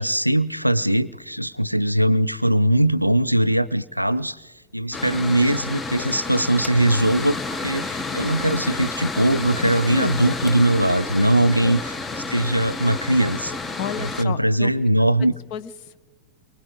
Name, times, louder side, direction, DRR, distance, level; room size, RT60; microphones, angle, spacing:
voice 1, 0.0-4.4 4.7-7.4 7.6-11.8 12.3-13.6 14.0-15.3, right 1 dB, 90° right, 19 dB, 0.5 m, -20 dB
Mechanical fan, 4.9-14.2, left 3 dB, 15° left, 1.0 m, -30 dB
voice 2, 9.6-10.3 11.6-11.7 13.8-14.7 15.5-16.0, left 9 dB, 45° left, 13 dB, 1.0 m, -31 dB
28.5 x 24.0 x 3.8 m, 1.2 s
figure-of-eight pair, 90°, 0 cm